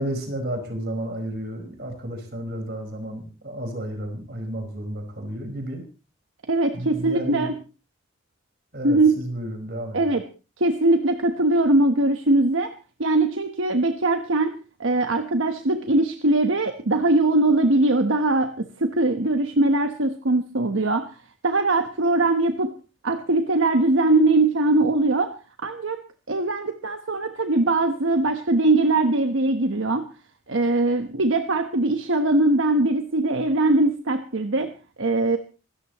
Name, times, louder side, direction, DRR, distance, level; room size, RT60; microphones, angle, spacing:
voice 1, 0.0-5.8 6.7-7.5 8.7-10.0, right 1 dB, 50° right, 5 dB, 5.0 m, -32 dB
voice 2, 6.5-7.6 8.8-9.1 9.9-10.2 10.6-12.7 13.0-21.1 21.4-22.8 23.0-25.3 25.6-26.0 26.3-30.1 30.5-34.7 35.0-35.4, right 2 dB, 75° right, 7 dB, 1.2 m, -21 dB
26.0 x 13.5 x 3.1 m, 0.33 s
head